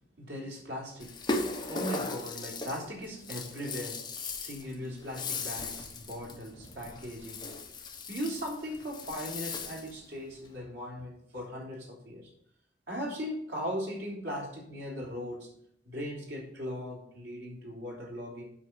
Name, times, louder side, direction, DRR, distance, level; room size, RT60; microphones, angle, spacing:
voice 1, 0.2-1.2 1.7-4.1 4.4-7.5 8.1-12.3 12.9-15.5 15.9-18.5, equal, 85° right, -2 dB, 3.6 m, -38 dB
Rattle (instrument), 1.0-10.0, left 3 dB, 25° left, 1.2 m, -38 dB
7.7 x 5.8 x 7.1 m, 0.71 s
head